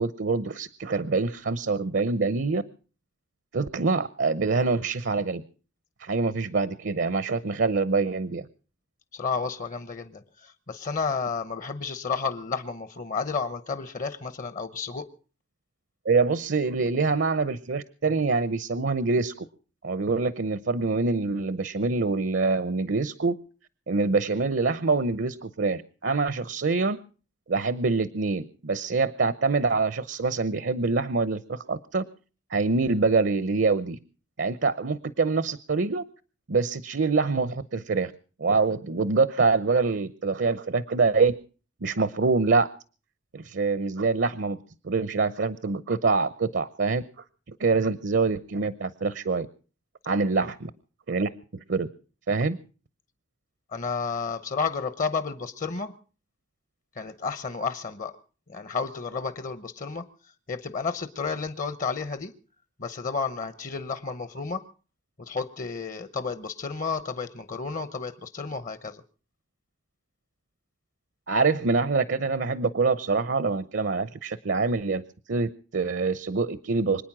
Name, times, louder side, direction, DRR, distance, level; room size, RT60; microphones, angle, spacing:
voice 1, 0.0-2.6 3.5-5.4 6.0-8.5 16.0-19.5 19.8-23.4 23.9-27.0 27.5-32.0 32.5-34.0 34.4-36.0 36.5-38.1 38.4-41.3 41.8-42.7 43.3-44.6 44.8-47.0 47.6-49.5 50.1-50.7 51.1-51.3 51.7-51.9 52.3-52.6 71.3-75.0 75.3-77.0, right 4 dB, 65° right, 16 dB, 0.7 m, -25 dB
voice 2, 9.1-15.1 53.7-55.9 57.0-58.2 58.5-60.1 60.5-62.3 62.8-64.6 65.2-69.0, left 5 dB, 45° left, 13 dB, 0.9 m, -31 dB
25.0 x 9.4 x 6.0 m, 0.40 s
head